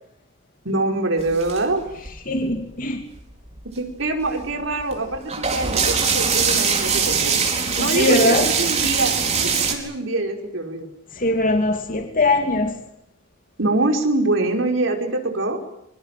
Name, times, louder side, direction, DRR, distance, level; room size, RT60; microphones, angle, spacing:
voice 1, 0.6-1.8 3.7-7.4 7.8-10.9 13.6-15.6, right 2 dB, 70° right, 3 dB, 5.0 m, -24 dB
sound 1, 1.2-2.5 3.1-3.2 3.5-9.7, right 6 dB, 35° right, 4.6 m, -22 dB
voice 2, 2.3-3.0 7.8-8.5 11.1-12.8, left 2 dB, 45° left, 5 dB, 2.7 m, -21 dB
25.0 x 25.0 x 7.6 m, 0.79 s
head